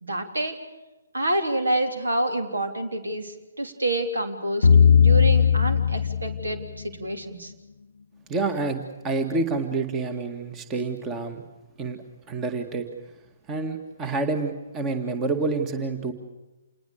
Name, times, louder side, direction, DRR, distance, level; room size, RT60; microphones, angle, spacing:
voice 1, 0.0-0.6 1.1-4.7 5.0-6.6 7.0-7.5, right 1 dB, 70° right, 6 dB, 3.6 m, -27 dB
sound 1, 4.6-6.8, left 7 dB, 65° left, 0.7 m, -18 dB
voice 2, 8.3-11.4 11.8-12.9 13.5-16.1, right 3 dB, 15° right, 8 dB, 2.0 m, -28 dB
28.0 x 21.0 x 6.7 m, 1.1 s
figure-of-eight pair, 130°, 0 cm